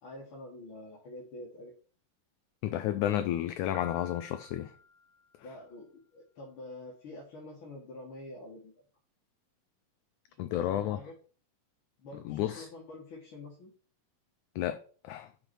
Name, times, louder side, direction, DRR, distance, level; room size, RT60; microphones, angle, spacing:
voice 1, 0.0-1.7 5.4-8.7 10.4-11.1 12.0-13.7, left 2 dB, 50° left, 1.7 m, -47 dB
voice 2, 2.6-4.7 10.4-11.0 12.2-12.7 14.6-14.8 15.0-15.3, left 12 dB, 85° left, 1.7 m, -31 dB
Piano, 3.7-5.6, left 4 dB, 85° right, 0.5 m, -51 dB
6.2 x 4.7 x 6.1 m
omnidirectional pair, 4.0 m